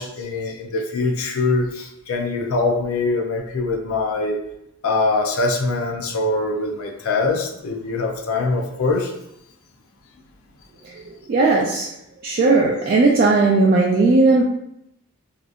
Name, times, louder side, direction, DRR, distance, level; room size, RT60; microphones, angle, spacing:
voice 1, 0.0-4.4 4.8-9.1, left 3 dB, 85° left, 1 dB, 0.5 m, -23 dB
voice 2, 11.3-11.9 12.2-14.4, right 3 dB, 45° right, -3 dB, 0.3 m, -16 dB
2.7 x 2.4 x 2.4 m, 0.78 s
head